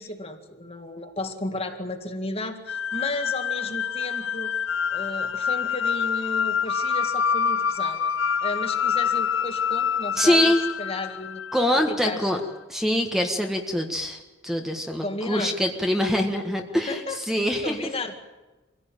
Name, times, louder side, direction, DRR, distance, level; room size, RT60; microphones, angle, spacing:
voice 1, 0.0-4.5 4.9-8.1 8.4-11.4 11.9-12.4 15.0-15.6 16.9-17.2 17.6-18.3, left 2 dB, 30° left, 5 dB, 2.0 m, -33 dB
sound 1, 2.7-11.8, left 7 dB, 80° left, 0.8 m, -26 dB
voice 2, 10.2-10.6 11.5-12.4 12.7-17.0 17.3-17.8, equal, ahead, 3 dB, 1.6 m, -24 dB
24.5 x 16.5 x 9.2 m, 1.2 s
head